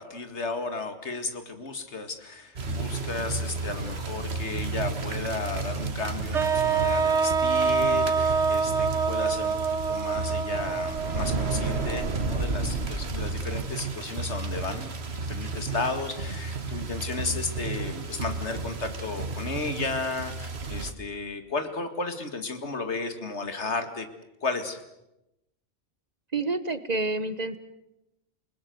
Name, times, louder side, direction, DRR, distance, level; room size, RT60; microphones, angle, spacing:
voice 1, 0.0-24.1 24.4-24.8, left 3 dB, 75° left, 8 dB, 2.3 m, -34 dB
sound 1, 2.6-20.9, right 3 dB, 65° right, 1.8 m, -32 dB
sound 2, 6.3-12.4, right 5 dB, 80° right, 1.7 m, -26 dB
voice 2, 26.3-27.6, right 3 dB, 40° right, 13 dB, 1.2 m, -28 dB
28.5 x 19.5 x 7.9 m, 0.91 s
omnidirectional pair, 1.2 m